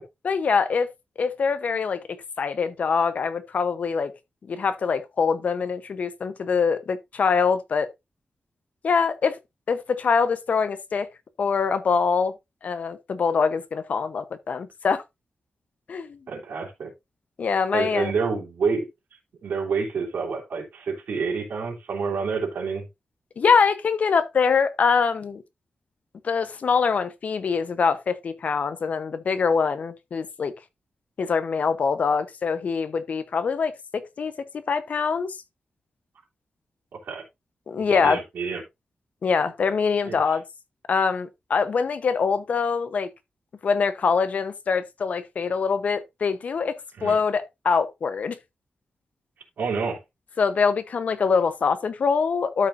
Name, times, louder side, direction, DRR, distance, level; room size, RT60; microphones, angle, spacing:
voice 1, 0.2-0.9 1.2-4.1 4.5-7.9 8.8-9.4 9.7-11.1 11.4-12.3 12.6-15.0 15.9-16.2 17.4-18.1 23.4-25.4 26.2-30.5 31.2-34.3 34.7-35.4 37.7-38.2 39.2-40.4 40.9-43.1 43.6-48.4 50.4-52.7, left 5 dB, 55° left, 0.9 m, -24 dB
voice 2, 16.3-16.9 17.7-18.8 19.4-22.9 37.1-37.2 37.8-38.6 40.0-40.2 47.0-47.2 49.6-50.0, right 5 dB, 85° right, 3.1 m, -28 dB
12.5 x 5.2 x 2.6 m
wide cardioid pair, 170°, 3 cm